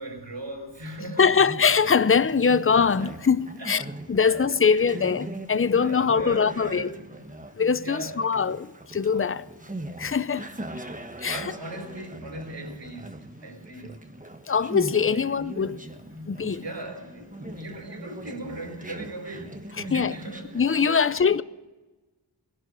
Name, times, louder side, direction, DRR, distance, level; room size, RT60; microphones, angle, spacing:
voice 1, 0.0-1.3 3.0-3.3 3.6-5.3 5.7-8.4 11.3-14.1 15.1-15.4 16.1-20.6 20.9-21.3, right 1 dB, 75° right, 4.2 m, -39 dB
voice 2, 1.2-3.8 4.1-6.9 7.6-9.4 10.0-10.5 11.2-11.4 14.5-15.8 16.3-16.6 19.9-20.1 20.5-21.4, left 6 dB, 30° left, 0.6 m, -22 dB
Conversation, 1.2-20.9, right 1 dB, 20° right, 1.2 m, -41 dB
19.5 x 11.5 x 5.5 m
wide cardioid pair, 55°, 43 cm